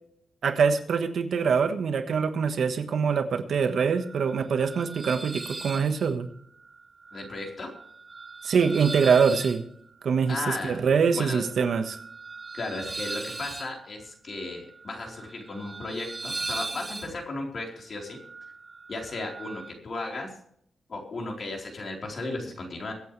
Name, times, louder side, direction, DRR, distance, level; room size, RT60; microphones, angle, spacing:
voice 1, 0.4-6.3 8.4-9.6 10.0-12.0, right 6 dB, 70° right, 7 dB, 1.4 m, -24 dB
sound 1, 3.8-19.7, right 3 dB, 20° right, 1.6 m, -40 dB
voice 2, 7.1-7.7 10.3-10.8 11.1-11.4 12.5-18.2 18.9-20.3 20.9-22.9, left 2 dB, 45° left, 0 dB, 4.2 m, -35 dB
24.0 x 8.3 x 3.3 m, 0.67 s
wide cardioid pair, 140°, 0 cm